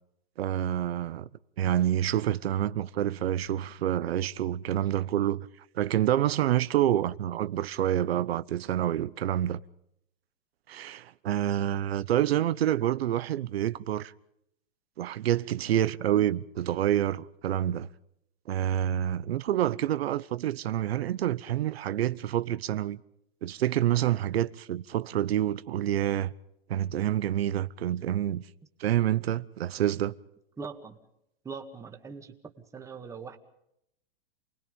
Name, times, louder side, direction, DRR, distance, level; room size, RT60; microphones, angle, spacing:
voice 1, 0.4-1.3 1.6-5.5 5.7-9.6 10.7-14.1 15.0-17.9 18.5-23.0 23.4-26.3 26.7-28.4 28.8-30.1, right 11 dB, 85° right, 1.0 m, -27 dB
voice 2, 30.6-31.0 31.4-33.4, right 5 dB, 10° right, 1.8 m, -41 dB
29.0 x 20.0 x 5.3 m
supercardioid pair, 150°, 30 cm